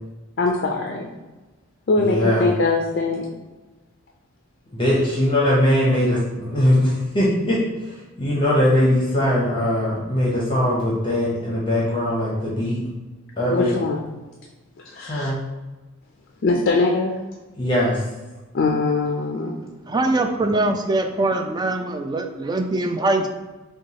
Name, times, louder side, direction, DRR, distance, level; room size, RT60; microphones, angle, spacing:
voice 1, 0.4-1.1 1.9-3.3 13.5-14.0 14.8-15.3 16.4-17.2 18.5-19.6, left 3 dB, 50° left, 1 dB, 0.4 m, -22 dB
voice 2, 2.0-2.4 4.7-12.8 13.4-13.8 15.1-15.4 17.6-18.0, left 1 dB, 25° left, -6 dB, 0.8 m, -21 dB
voice 3, 19.9-23.3, right 2 dB, 20° right, 5 dB, 0.3 m, -22 dB
6.0 x 2.3 x 2.8 m, 1.2 s
head